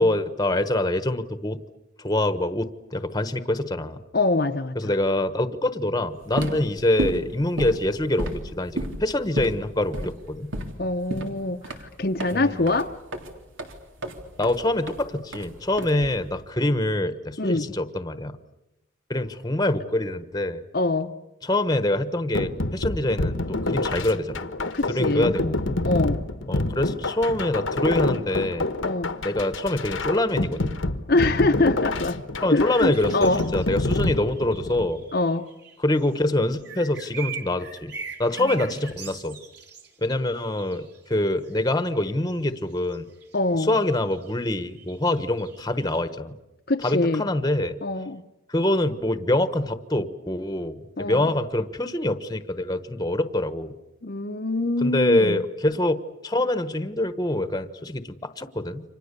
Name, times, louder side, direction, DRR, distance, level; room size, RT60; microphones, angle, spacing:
voice 1, 0.0-1.6 2.0-4.0 4.7-10.5 12.3-12.6 14.4-18.4 19.1-20.6 21.4-24.5 24.9-25.6 26.5-28.7 29.2-30.7 32.4-35.0 35.8-37.9 38.2-39.4 40.0-43.1 43.7-46.4 46.8-47.8 48.5-53.7 54.8-58.8, left 1 dB, 20° left, 11 dB, 1.2 m, -25 dB
voice 2, 4.1-4.9 10.8-12.9 17.4-17.7 20.7-21.1 24.6-25.3 25.8-26.2 28.8-29.1 31.1-32.2 32.5-33.4 35.1-35.5 38.4-38.6 43.3-43.8 46.7-47.2 47.8-48.2 51.0-51.3 54.0-55.4, left 2 dB, 50° left, 4 dB, 0.9 m, -24 dB
sound 1, 6.2-16.4, right 1 dB, 85° right, 3.5 m, -33 dB
sound 2, 22.3-34.9, left 2 dB, 80° left, 1.4 m, -27 dB
sound 3, 32.9-36.2 36.5-41.2 41.4-46.0, right 6 dB, 55° right, 4.1 m, -42 dB
30.0 x 26.0 x 6.9 m, 0.97 s
head